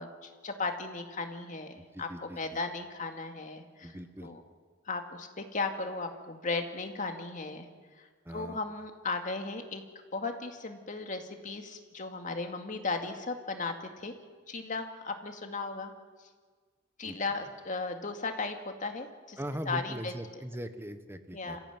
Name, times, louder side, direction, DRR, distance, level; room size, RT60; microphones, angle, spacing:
voice 1, 0.0-2.1 2.4-4.4 4.9-7.7 8.0-9.8 10.1-14.1 14.5-15.9 17.0-19.4 19.7-20.1 21.3-21.6, left 3 dB, 40° left, 5 dB, 2.3 m, -36 dB
voice 2, 1.8-2.6 3.8-4.3 8.2-8.6 17.0-17.2 19.4-21.6, equal, 10° right, 9 dB, 1.1 m, -40 dB
27.0 x 15.5 x 9.6 m, 1.5 s
head